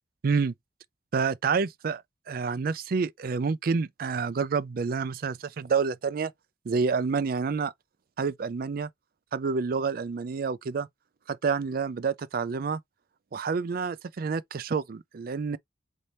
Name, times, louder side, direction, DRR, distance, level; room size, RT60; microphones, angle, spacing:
voice 1, 0.2-0.5 1.1-2.0 2.3-6.3 6.7-7.7 8.2-8.9 9.3-10.9 11.3-12.8 13.3-15.6, right 5 dB, 55° right, 0.4 m, -28 dB
4.2 x 2.6 x 3.3 m
head